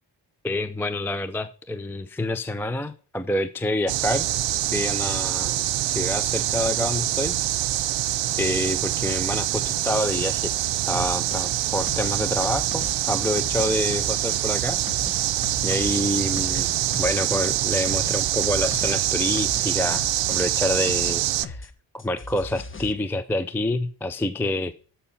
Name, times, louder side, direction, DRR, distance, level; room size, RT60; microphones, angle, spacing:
voice 1, 0.4-4.3 4.7-7.4 8.4-10.5 10.9-14.8 15.6-24.7, left 1 dB, 5° left, 12 dB, 0.4 m, -27 dB
sound 1, 3.9-21.5, right 14 dB, 75° right, 0.6 m, -25 dB
sound 2, 10.9-21.7 22.0-22.9, left 3 dB, 25° left, 0.9 m, -39 dB
12.5 x 5.6 x 4.1 m, 0.39 s
wide cardioid pair, 120°, 45 cm